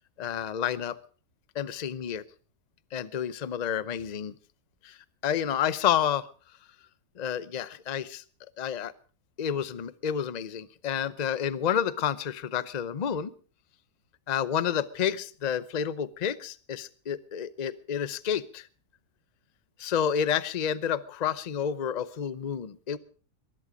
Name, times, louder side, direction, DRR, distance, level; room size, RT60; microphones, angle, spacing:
voice 1, 0.2-1.0 1.5-2.2 2.9-4.3 4.8-5.0 5.2-6.3 7.2-8.2 8.6-8.9 9.4-13.3 14.3-18.7 19.8-23.0, left 8 dB, 45° left, 15 dB, 0.5 m, -29 dB
21.5 x 11.0 x 5.2 m, 0.41 s
omnidirectional pair, 1.8 m